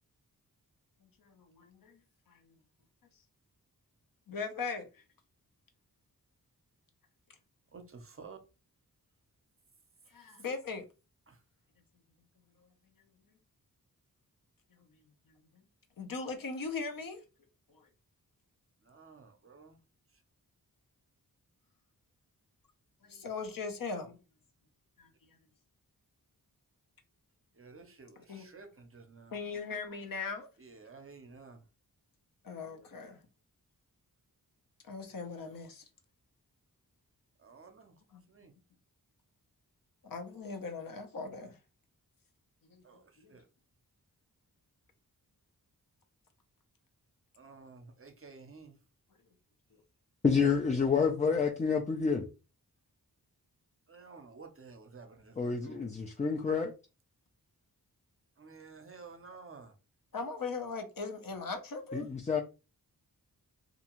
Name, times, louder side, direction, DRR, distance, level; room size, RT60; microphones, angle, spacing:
voice 1, 1.2-2.0 2.3-2.4 4.3-5.0 10.1-10.8 15.3-15.4 16.0-17.2 17.7-17.8 23.0-24.2 25.0-25.1 28.2-28.5 29.3-30.5 32.4-33.2 34.9-35.8 38.1-38.2 40.0-41.6 42.7-42.8 43.2-43.3 60.1-62.1, left 4 dB, 60° left, 0.7 m, -39 dB
voice 2, 7.7-8.4 11.3-11.4 18.9-19.8 27.6-29.3 30.6-31.6 37.4-37.9 38.3-38.5 42.8-43.0 43.3-43.4 47.4-48.7 53.9-55.8 58.4-59.7, right 4 dB, 35° right, 0.6 m, -52 dB
voice 3, 50.2-52.3 55.4-56.7 61.9-62.4, left 5 dB, 20° left, 0.3 m, -28 dB
2.5 x 2.3 x 2.9 m
wide cardioid pair, 80°, 38 cm